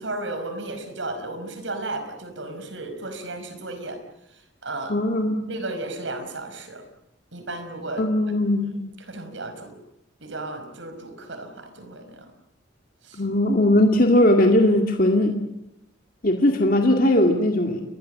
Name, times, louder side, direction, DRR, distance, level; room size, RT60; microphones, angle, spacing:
voice 1, 0.0-4.0 4.3-4.9 5.5-6.8 7.3-8.1 8.6-9.7 10.2-12.3 13.0-13.2, right 2 dB, 75° right, 8 dB, 5.1 m, -34 dB
voice 2, 4.9-5.4 8.0-8.7 13.1-15.4 16.2-17.8, left 1 dB, 45° left, 3 dB, 2.2 m, -19 dB
29.0 x 21.5 x 7.7 m, 0.83 s
head